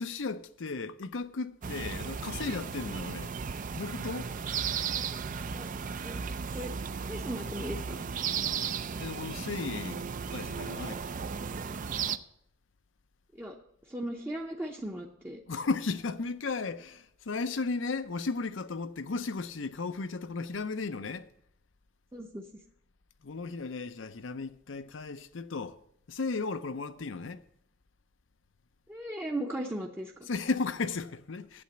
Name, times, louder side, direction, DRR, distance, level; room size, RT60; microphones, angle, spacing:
voice 1, 0.0-3.3 3.7-4.3 9.0-10.0 10.3-11.0 15.5-21.3 23.2-25.8 26.1-27.4 30.3-31.6, left 4 dB, 80° left, 0.6 m, -35 dB
sound 1, 1.6-12.2, right 6 dB, 45° right, 0.4 m, -35 dB
voice 2, 7.0-8.0 13.3-13.6 13.9-15.4 22.1-22.4 28.9-30.3, right 1 dB, 10° right, 0.7 m, -37 dB
8.7 x 7.7 x 7.8 m
head